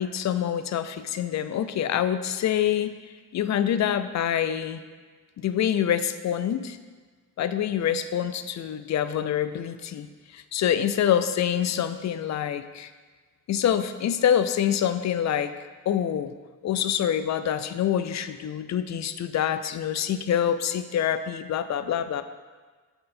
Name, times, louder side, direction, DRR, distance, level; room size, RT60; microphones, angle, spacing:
voice 1, 0.0-3.0 3.3-4.8 5.4-6.8 7.4-12.9 13.5-15.5 15.9-16.3 16.6-22.2, left 9 dB, 55° left, 11 dB, 0.4 m, -26 dB
7.6 x 3.8 x 4.2 m, 1.4 s
cardioid pair, 100°, 34 cm